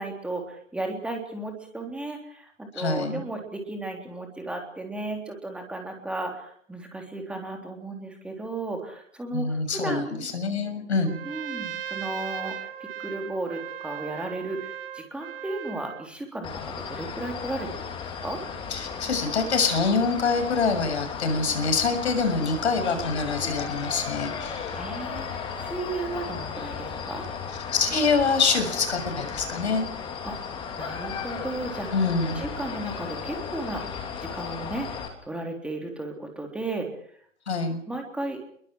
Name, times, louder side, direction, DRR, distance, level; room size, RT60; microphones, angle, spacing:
voice 1, 0.0-10.3 11.2-17.7 18.2-18.4 23.4-23.5 24.7-27.2 30.2-30.4 30.8-31.9 32.4-36.9 37.9-38.4, right 2 dB, 5° right, 2 dB, 3.5 m, -34 dB
voice 2, 2.7-3.2 9.3-11.2 18.7-24.8 27.7-29.9 31.9-32.4 37.5-37.8, left 4 dB, 55° left, 7 dB, 6.8 m, -25 dB
Trumpet, 11.0-16.1, right 10 dB, 45° right, 2.0 m, -37 dB
sound 1, 16.4-35.1, left 6 dB, 10° left, 2.9 m, -35 dB
29.0 x 23.0 x 4.7 m, 0.65 s
figure-of-eight pair, 130°, 40 cm